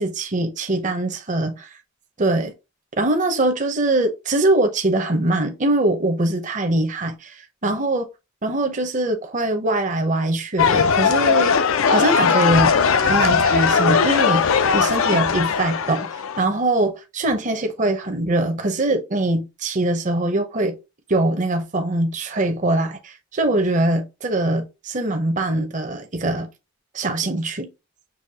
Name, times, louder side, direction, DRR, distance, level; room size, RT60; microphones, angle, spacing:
voice 1, 0.0-1.7 2.2-2.5 3.0-8.1 8.4-11.5 11.9-12.7 13.0-16.1 16.4-20.8 21.1-26.5 26.9-27.7, right 2 dB, 35° right, 0.7 m, -22 dB
sound 1, 10.6-16.4, left 6 dB, 75° left, 0.5 m, -19 dB
6.3 x 2.7 x 2.8 m
head